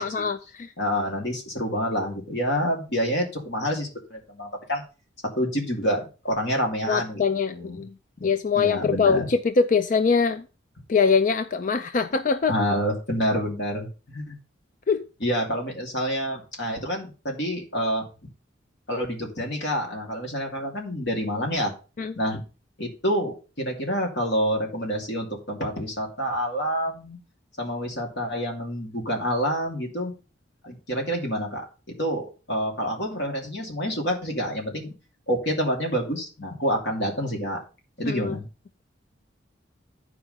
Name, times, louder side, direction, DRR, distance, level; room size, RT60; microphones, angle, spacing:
voice 1, 0.0-0.7 6.9-7.9 8.2-10.4 10.9-12.5 14.9-15.1 22.0-22.1 38.0-38.4, left 5 dB, 45° left, 0.4 m, -23 dB
voice 2, 0.8-4.8 5.3-7.8 8.6-9.3 12.5-14.4 15.2-18.0 18.9-21.7 22.1-22.4 22.8-27.2 27.6-30.1 30.6-34.9 35.3-37.6 38.0-38.4, equal, 65° left, 2.8 m, -28 dB
10.0 x 4.9 x 5.3 m
head